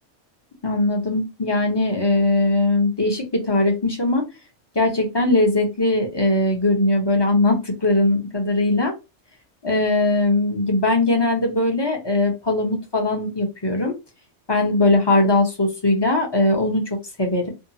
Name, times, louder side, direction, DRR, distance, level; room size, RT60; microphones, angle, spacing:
voice 1, 0.6-4.2 4.7-8.9 9.6-13.9 14.5-17.5, left 2 dB, 30° left, 2 dB, 0.5 m, -20 dB
2.7 x 2.3 x 2.7 m, 0.26 s
omnidirectional pair, 1.3 m